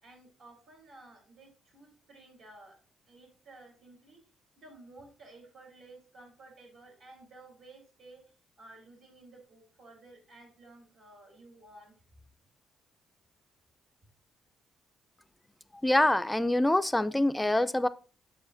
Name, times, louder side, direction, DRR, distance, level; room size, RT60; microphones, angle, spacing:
voice 1, 0.0-2.8 3.1-4.2 4.6-8.2 8.6-11.9, right 2 dB, 70° right, 0 dB, 3.4 m, -54 dB
voice 2, 15.8-17.9, left 1 dB, 10° left, 12 dB, 0.3 m, -25 dB
7.1 x 6.5 x 2.5 m, 0.37 s
cardioid pair, 90°, 0 cm